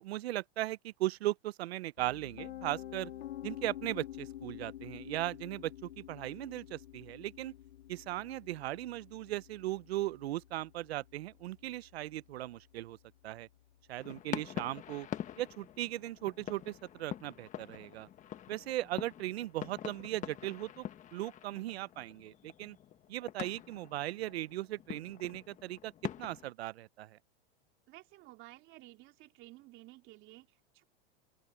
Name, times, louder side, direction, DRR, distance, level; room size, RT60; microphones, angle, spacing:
voice 1, 0.0-3.1 3.4-7.5 7.9-13.0 13.2-13.5 13.9-15.1 15.4-18.1 18.5-20.9 21.1-22.8 23.1-25.9 26.2-27.2, right 15 dB, 80° right, 0.7 m, -38 dB
Piano, 2.0-13.9, left 13 dB, 90° left, 2.0 m, -49 dB
sound 1, 14.0-26.5, left 10 dB, 25° left, 1.5 m, -45 dB
voice 2, 27.9-30.8, right 19 dB, 40° right, 3.1 m, -54 dB
open air
supercardioid pair, 140°, 31 cm